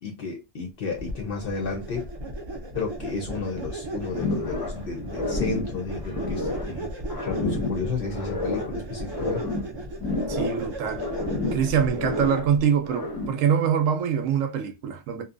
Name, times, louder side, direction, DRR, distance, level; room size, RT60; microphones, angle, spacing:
voice 1, 0.0-2.1 2.7-6.9 7.2-9.5, left 4 dB, 55° left, 0.7 m, -32 dB
sound 1, 1.0-12.6, right 1 dB, 40° right, 0.3 m, -36 dB
sound 2, 4.1-4.8 5.1-6.8 7.1-8.8 9.1-10.7 10.9-12.5 12.8-13.5, left 2 dB, 20° left, 0.7 m, -30 dB
voice 2, 10.3-11.1 11.5-15.2, right 8 dB, 75° right, 0.9 m, -24 dB
2.7 x 2.2 x 2.5 m
omnidirectional pair, 1.4 m